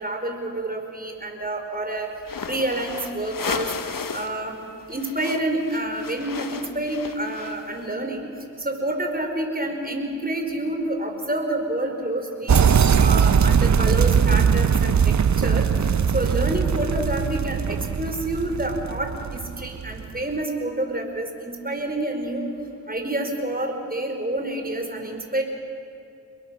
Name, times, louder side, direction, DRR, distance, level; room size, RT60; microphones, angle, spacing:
voice 1, 0.0-2.1 2.5-3.7 4.1-4.5 4.9-8.3 8.6-12.6 13.0-15.0 15.4-15.7 16.1-22.5 22.9-25.4, right 1 dB, 25° right, 3 dB, 4.8 m, -28 dB
sound 1, 2.2-4.4 4.7-7.8, left 6 dB, 65° left, 1.3 m, -34 dB
sound 2, 12.5-20.2, right 7 dB, 50° right, 0.7 m, -20 dB
29.0 x 21.5 x 6.6 m, 2.7 s
cardioid pair, 50°, 36 cm